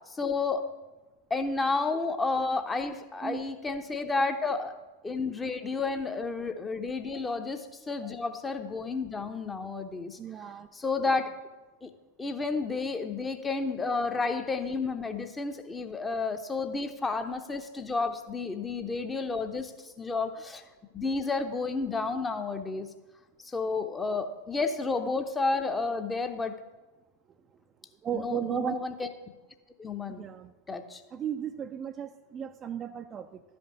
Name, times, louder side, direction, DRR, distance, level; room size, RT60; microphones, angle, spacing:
voice 1, 0.1-0.6 1.3-4.7 5.0-10.2 10.7-11.3 11.8-11.9 12.2-19.7 20.0-20.6 20.9-22.9 23.4-26.6 28.1-29.1 29.8-30.2 30.7-31.0, left 3 dB, 15° left, 7 dB, 0.8 m, -31 dB
voice 2, 10.2-10.7 27.5-27.6 28.0-28.8 30.1-30.5 31.1-33.4, right 9 dB, 25° right, 7 dB, 0.5 m, -35 dB
12.0 x 5.2 x 6.3 m, 1.1 s
figure-of-eight pair, 90°, 0 cm